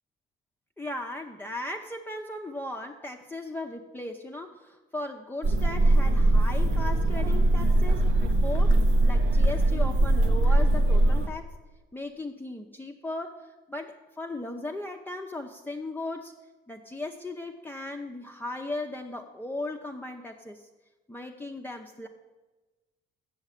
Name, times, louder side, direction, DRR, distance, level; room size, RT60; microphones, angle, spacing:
voice 1, 0.8-8.8 9.1-11.5 11.9-16.3 16.7-20.7 21.1-22.1, left 2 dB, 10° left, 1 dB, 0.6 m, -37 dB
sound 1, 5.4-11.3, right 1 dB, 75° right, 1.0 m, -21 dB
7.2 x 7.1 x 8.2 m, 1.2 s
cardioid pair, 90°, 20 cm